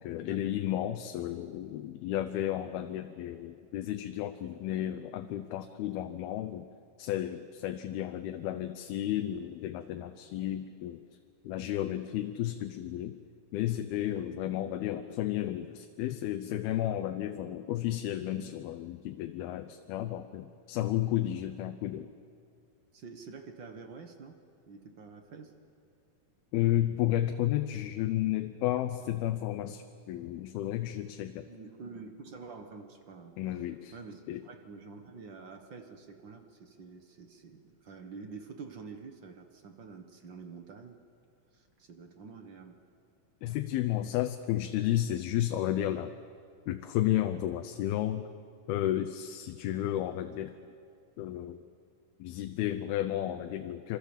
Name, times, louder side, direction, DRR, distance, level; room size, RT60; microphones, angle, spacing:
voice 1, 0.0-6.7 7.0-11.0 11.4-13.2 13.5-22.1 26.5-31.5 33.4-33.9 34.3-34.4 43.4-46.1 46.7-48.3 48.7-50.6 51.2-51.6 52.2-54.0, left 13 dB, 85° left, 7 dB, 2.7 m, -32 dB
voice 2, 22.9-24.4 24.6-25.5 31.5-33.6 33.9-41.0 41.5-42.8, right 4 dB, 50° right, 6 dB, 1.3 m, -48 dB
26.5 x 26.0 x 7.3 m, 2.4 s
omnidirectional pair, 4.3 m